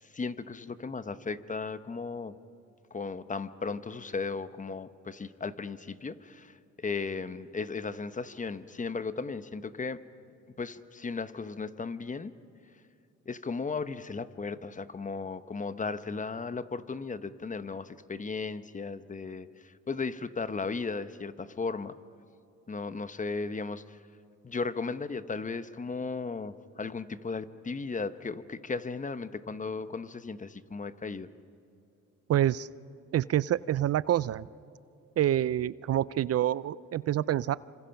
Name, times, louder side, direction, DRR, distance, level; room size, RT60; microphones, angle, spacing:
voice 1, 0.0-2.3 2.9-10.0 10.6-12.3 13.3-21.9 22.7-24.0 24.4-31.3, left 4 dB, 25° left, 13 dB, 1.0 m, -36 dB
voice 2, 32.3-32.7 33.1-34.5 35.2-37.6, right 12 dB, 55° right, 19 dB, 0.5 m, -27 dB
26.5 x 26.0 x 5.8 m, 2.7 s
cardioid pair, 90°, 30 cm